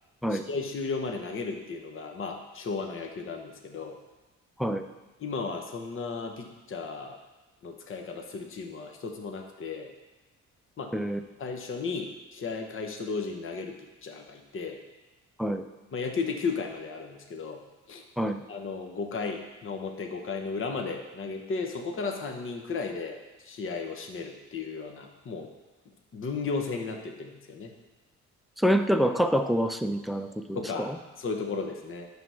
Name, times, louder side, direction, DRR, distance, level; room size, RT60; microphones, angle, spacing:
voice 1, 0.3-4.0 5.2-7.2 7.6-9.9 10.8-10.9 11.4-13.8 14.0-14.8 15.9-17.6 17.9-18.0 18.5-25.5 26.1-27.7 30.5-32.1, left 4 dB, 45° left, 4 dB, 1.0 m, -34 dB
voice 2, 28.6-30.9, equal, ahead, 8 dB, 0.5 m, -26 dB
10.5 x 3.6 x 6.2 m, 1.1 s
cardioid pair, 90°, 30 cm